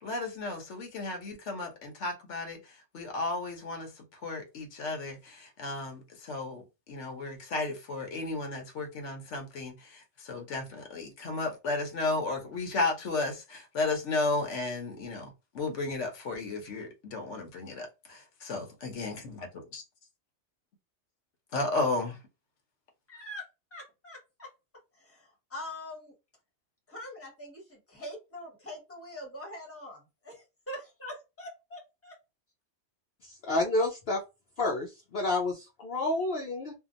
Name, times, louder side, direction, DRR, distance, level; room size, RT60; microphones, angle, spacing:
voice 1, 0.0-2.6 2.9-19.8 21.5-22.2, left 3 dB, 80° left, 1.2 m, -34 dB
voice 2, 23.1-24.5 24.9-26.1 26.9-32.2, left 1 dB, 10° left, 1.2 m, -44 dB
voice 3, 33.2-34.2 34.6-36.7, left 2 dB, 60° left, 0.9 m, -29 dB
2.8 x 2.4 x 2.5 m
omnidirectional pair, 1.2 m